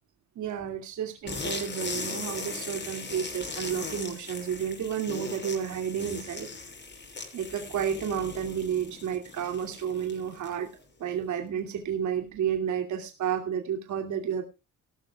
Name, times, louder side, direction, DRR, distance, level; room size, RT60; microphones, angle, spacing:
voice 1, 0.4-6.5 7.3-10.7 11.0-14.4, right 8 dB, 75° right, 4 dB, 2.6 m, -31 dB
sound 1, 1.3-10.8, left 3 dB, 35° left, 6.4 m, -38 dB
17.5 x 13.5 x 2.3 m, 0.29 s
cardioid pair, 90°, 30 cm